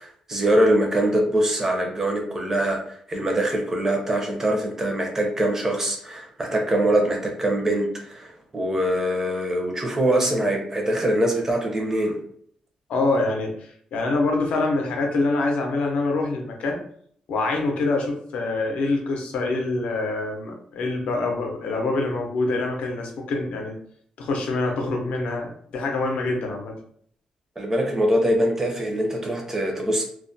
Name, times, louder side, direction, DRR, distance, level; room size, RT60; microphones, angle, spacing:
voice 1, 0.0-12.2 27.6-30.0, right 1 dB, 20° right, 1 dB, 0.5 m, -23 dB
voice 2, 12.9-16.8 17.3-23.8 24.2-26.8, left 2 dB, 75° left, 2 dB, 0.5 m, -25 dB
2.2 x 2.1 x 2.6 m, 0.63 s
cardioid pair, 145°, 2 cm